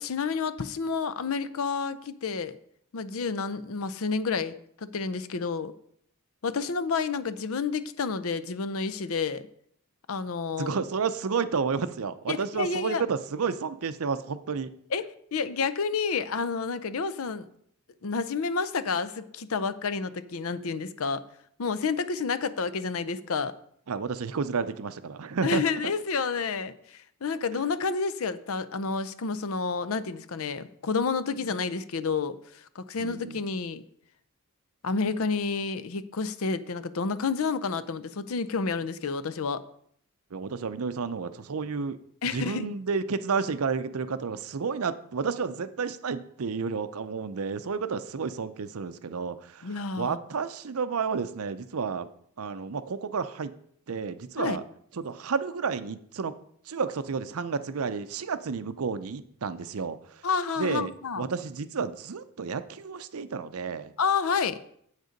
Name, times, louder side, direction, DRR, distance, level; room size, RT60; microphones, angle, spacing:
voice 1, 0.0-2.6 2.9-5.7 6.4-9.4 10.1-10.8 12.3-13.0 14.9-17.5 18.0-21.2 21.6-23.5 25.4-33.8 34.8-39.6 42.2-42.7 49.6-50.2 54.4-54.6 60.2-61.2 64.0-64.6, left 5 dB, 75° left, 14 dB, 0.6 m, -30 dB
voice 2, 10.6-14.7 23.9-25.6 33.0-33.4 40.3-42.0 42.3-52.1 52.4-53.5 53.9-54.6 55.0-56.4 56.7-60.0 60.6-63.9, right 5 dB, 80° right, 13 dB, 0.6 m, -31 dB
8.1 x 6.5 x 5.1 m, 0.67 s
head